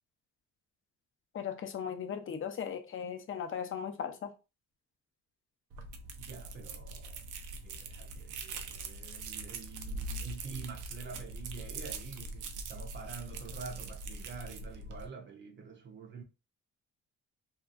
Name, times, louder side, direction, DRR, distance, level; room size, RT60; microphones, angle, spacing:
voice 1, 1.3-4.3, left 7 dB, 45° left, 0.5 m, -37 dB
sound 1, 5.7-15.1, right 3 dB, 85° right, 0.5 m, -42 dB
voice 2, 6.2-7.2 7.6-16.2, right 5 dB, 40° right, 0.5 m, -47 dB
2.8 x 2.3 x 2.4 m
cardioid pair, 90°, 30 cm